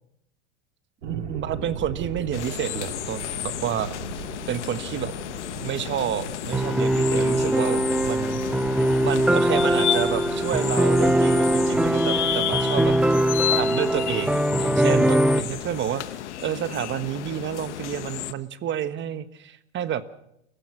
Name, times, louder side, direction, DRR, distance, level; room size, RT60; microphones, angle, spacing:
voice 1, 1.0-3.9 4.5-5.1 5.6-8.4 9.0-13.0 13.5-20.0, right 10 dB, 35° right, 12 dB, 1.5 m, -29 dB
sound 1, 1.0-15.8, right 6 dB, 85° right, 4.3 m, -40 dB
sound 2, 2.3-18.3, left 12 dB, 80° left, 1.2 m, -32 dB
sound 3, 6.5-15.4, right 1 dB, 5° right, 0.8 m, -22 dB
29.0 x 15.5 x 6.2 m, 0.80 s
hypercardioid pair, 110°, 34 cm